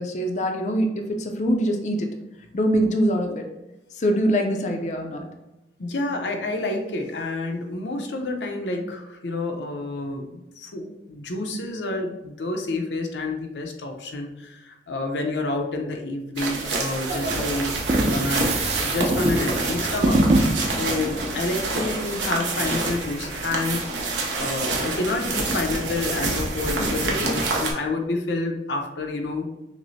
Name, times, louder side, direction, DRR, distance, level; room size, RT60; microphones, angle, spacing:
voice 1, 0.0-2.1 2.5-3.4 3.9-5.2 26.8-27.3, equal, 40° left, 3 dB, 0.4 m, -24 dB
voice 2, 5.8-17.7 18.1-23.9 24.4-29.5, left 2 dB, 80° left, 3 dB, 0.6 m, -29 dB
sound 1, 16.4-27.7, right 3 dB, 85° right, 0.8 m, -27 dB
sound 2, 17.1-21.9, right 1 dB, 35° right, 0.4 m, -24 dB
5.9 x 2.0 x 2.7 m, 0.98 s
head